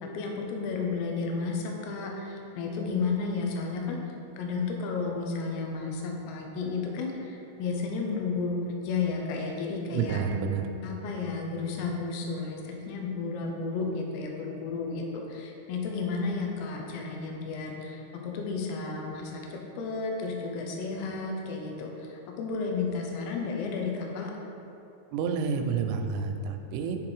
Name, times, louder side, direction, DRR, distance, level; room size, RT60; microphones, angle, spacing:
voice 1, 0.0-4.0 4.4-10.2 10.8-24.3, left 4 dB, 90° left, 0 dB, 2.3 m, -32 dB
voice 2, 9.9-10.6 25.1-27.0, right 6 dB, 85° right, 5 dB, 3.1 m, -29 dB
7.5 x 3.8 x 4.8 m, 2.9 s
omnidirectional pair, 5.7 m